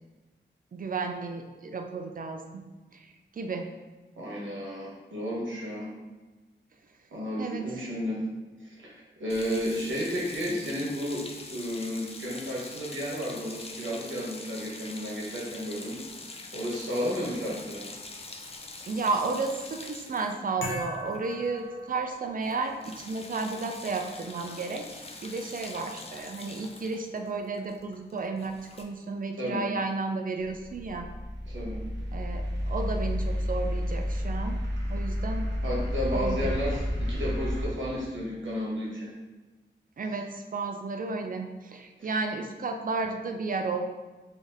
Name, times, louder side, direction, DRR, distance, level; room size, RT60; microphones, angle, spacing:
voice 1, 0.7-2.6 2.9-3.7 7.4-7.9 18.9-31.1 32.1-35.5 36.1-36.8 40.0-43.8, right 3 dB, 45° right, 5 dB, 0.4 m, -33 dB
voice 2, 4.2-5.9 7.1-8.2 8.6-16.0 16.5-17.8 29.4-29.7 31.5-31.8 35.6-39.1 42.0-42.1, equal, 90° right, -5 dB, 1.2 m, -32 dB
sound 1, 9.3-21.7 21.9-22.1 22.4-28.8, left 3 dB, 30° left, 0.4 m, -44 dB
sound 2, 20.6-22.5, left 1 dB, 85° left, 0.7 m, -39 dB
sound 3, 30.4-37.6, equal, 70° right, 0.9 m, -31 dB
3.6 x 2.6 x 3.5 m, 1.2 s
wide cardioid pair, 105°, 19 cm